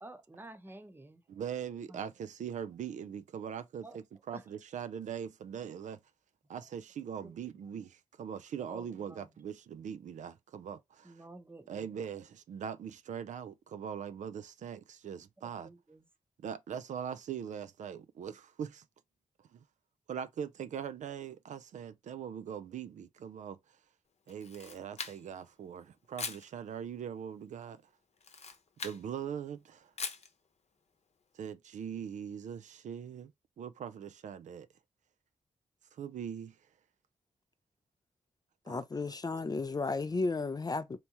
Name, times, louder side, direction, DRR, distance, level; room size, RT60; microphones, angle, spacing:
voice 1, 0.0-1.2 1.9-2.0 3.8-4.0 4.3-4.4 8.7-9.3 11.0-11.9 15.6-16.0, right 2 dB, 15° right, 0.7 m, -50 dB
voice 2, 1.3-6.0 6.5-11.1 11.7-15.7 16.4-18.8 19.5-19.6 20.1-23.6 24.3-27.8 28.8-29.9 31.3-33.3 33.6-34.7 36.0-36.5 38.7-38.8, right 8 dB, 80° right, 0.4 m, -41 dB
Camera, 24.3-25.5 26.2-26.5 28.2-29.0 30.0-30.3, left 5 dB, 60° left, 0.8 m, -41 dB
voice 3, 38.7-41.0, left 3 dB, 30° left, 0.4 m, -33 dB
3.4 x 2.8 x 2.9 m
cardioid pair, 60°, 12 cm